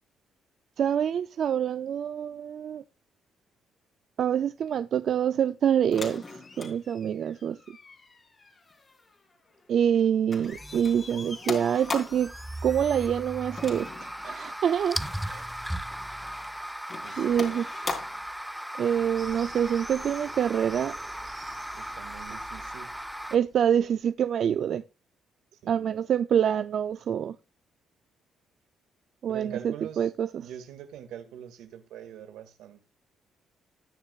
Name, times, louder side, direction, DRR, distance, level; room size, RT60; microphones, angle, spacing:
voice 1, 0.8-2.8 4.2-6.2 6.6-7.8 9.7-12.3 12.6-15.0 15.3-15.5 17.2-17.6 18.8-20.9 23.3-24.8 25.7-27.4 29.2-30.5, right 9 dB, 65° right, 0.5 m, -26 dB
Julian's Door - open and close with latch, 5.9-10.0 10.3-12.3 13.6-14.5 15.0-15.2 15.9-16.5 16.9-18.3 19.5-19.6, left 4 dB, 35° left, 3.4 m, -40 dB
sound 1, 10.4-23.4, equal, 5° right, 0.6 m, -37 dB
voice 2, 17.0-17.6 21.7-22.9 25.6-26.0 29.3-30.1 30.4-32.8, right 9 dB, 90° right, 2.0 m, -43 dB
sound 2, 19.2-24.0, right 4 dB, 35° right, 3.0 m, -49 dB
19.0 x 6.6 x 2.4 m
cardioid pair, 90°, 0 cm